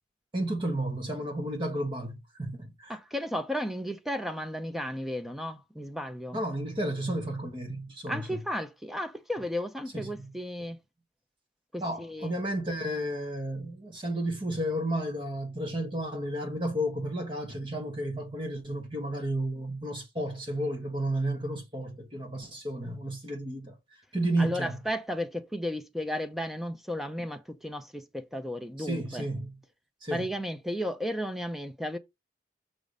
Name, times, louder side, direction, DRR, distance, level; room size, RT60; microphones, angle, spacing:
voice 1, 0.3-3.0 6.3-8.4 9.9-10.3 11.8-23.8 24.1-24.8 28.8-29.5 30.0-30.2, right 1 dB, 25° right, 1.5 m, -32 dB
voice 2, 2.9-6.4 8.1-10.8 11.7-12.3 24.4-29.3 30.1-32.0, equal, ahead, 0.7 m, -34 dB
6.2 x 5.1 x 4.0 m
head